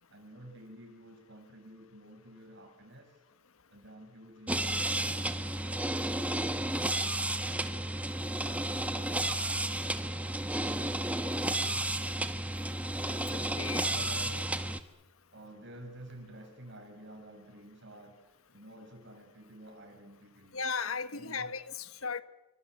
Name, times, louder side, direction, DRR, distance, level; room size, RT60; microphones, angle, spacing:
voice 1, 0.1-3.2 3.7-7.9 8.4-9.8 10.0-12.4 13.7-14.5 15.3-20.6 21.1-21.5, right 1 dB, 60° right, 6.6 m, -52 dB
sound 1, 4.5-14.8, right 1 dB, 5° right, 1.2 m, -32 dB
voice 2, 13.0-13.8 20.5-22.2, left 5 dB, 85° left, 1.3 m, -36 dB
28.0 x 24.0 x 7.8 m
head